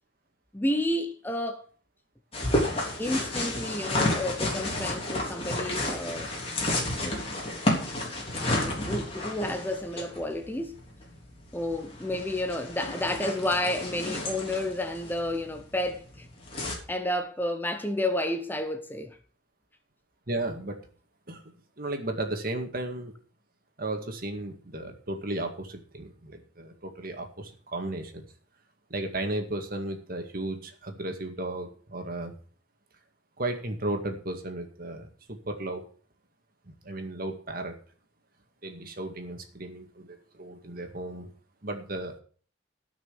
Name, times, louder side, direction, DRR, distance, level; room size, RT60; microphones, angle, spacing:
voice 1, 0.5-1.7 3.0-6.3 7.0-7.2 8.6-10.8 11.5-16.3 16.6-19.2, left 1 dB, 10° left, 0.7 m, -31 dB
sound 1, 2.3-16.8, left 1 dB, 30° left, 3.5 m, -31 dB
voice 2, 20.3-20.8 21.3-21.4 21.8-23.1 23.8-28.2 28.9-32.3 33.4-35.8 36.8-37.7 38.6-41.3 41.6-42.1, right 2 dB, 50° right, 2.0 m, -34 dB
14.0 x 6.2 x 7.0 m
head